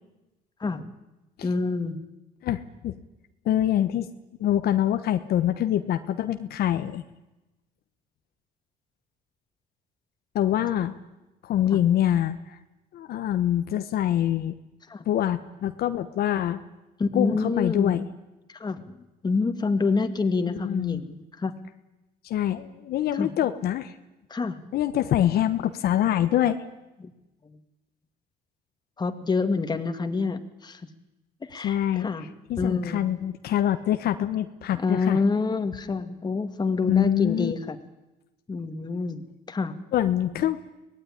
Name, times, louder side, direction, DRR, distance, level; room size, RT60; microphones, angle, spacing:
voice 1, 1.4-2.0 11.7-11.8 14.9-15.0 17.0-18.0 18.5-18.8 19.2-21.5 23.1-23.3 24.3-24.6 27.0-27.1 27.5-27.6 29.0-30.8 31.5-32.3 32.6-33.1 34.8-37.8 38.5-39.7, left 4 dB, 25° left, 8 dB, 2.2 m, -27 dB
voice 2, 2.4-3.0 3.4-4.1 4.4-7.0 10.3-10.9 11.4-12.6 12.9-14.6 15.1-16.6 17.1-18.1 20.5-21.0 22.2-23.9 24.7-26.6 31.6-32.1 32.5-35.2 36.9-37.5 39.9-40.7, left 11 dB, 65° left, 8 dB, 1.2 m, -25 dB
24.5 x 19.0 x 10.0 m, 1.0 s
cardioid pair, 110°, 17 cm